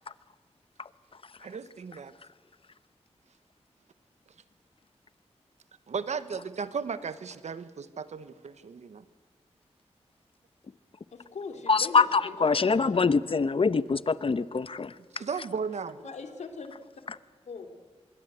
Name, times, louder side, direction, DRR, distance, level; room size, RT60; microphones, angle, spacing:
voice 1, 1.4-2.1 5.9-9.0 15.1-16.1, right 5 dB, 85° right, 13 dB, 1.2 m, -35 dB
voice 2, 11.1-13.0 16.0-16.7 17.5-17.7, left 4 dB, 90° left, 5 dB, 2.7 m, -40 dB
voice 3, 11.7-14.9, left 4 dB, 55° left, 15 dB, 1.0 m, -24 dB
26.0 x 21.5 x 8.1 m, 1.5 s
cardioid pair, 50°, 11 cm